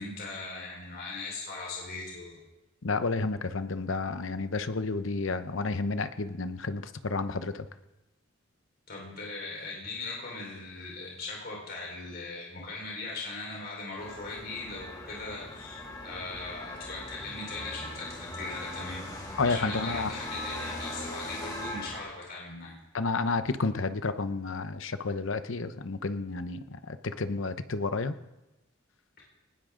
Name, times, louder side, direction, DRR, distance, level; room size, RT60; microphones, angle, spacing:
voice 1, 0.0-2.4 8.9-19.1 19.4-22.7, left 3 dB, 50° left, -3 dB, 4.7 m, -39 dB
voice 2, 2.8-7.7 19.4-20.2 22.9-28.1, left 3 dB, 65° left, 11 dB, 0.9 m, -31 dB
sound 1, 14.0-22.0, left 1 dB, 20° left, 2.7 m, -40 dB
20.0 x 19.0 x 3.8 m, 1.0 s
head